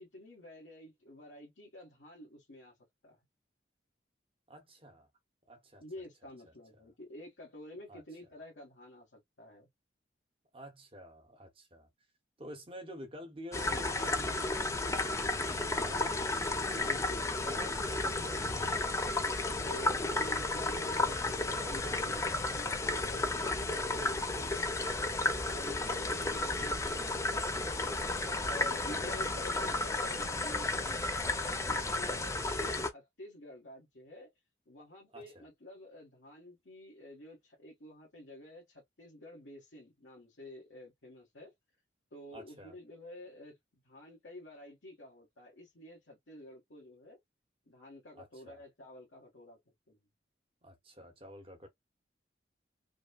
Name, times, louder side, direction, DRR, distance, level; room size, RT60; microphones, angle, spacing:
voice 1, 0.0-2.8 3.0-3.2 5.8-9.7 16.7-17.3 18.7-19.2 19.6-25.2 25.5-28.2 28.4-34.3 34.7-41.5 42.1-47.2 47.7-49.6 49.9-50.0, left 1 dB, 80° left, 1.4 m, -50 dB
voice 2, 4.5-5.1 5.5-5.8 7.9-8.0 10.5-11.9 12.4-15.2 15.6-16.9 17.2-18.8 28.9-29.1 32.4-32.8 35.1-35.5 42.3-42.7 48.1-48.6 50.6-51.7, equal, 30° right, 1.1 m, -50 dB
sound 1, 13.5-32.9, left 2 dB, 15° left, 0.5 m, -33 dB
5.2 x 2.2 x 2.4 m
head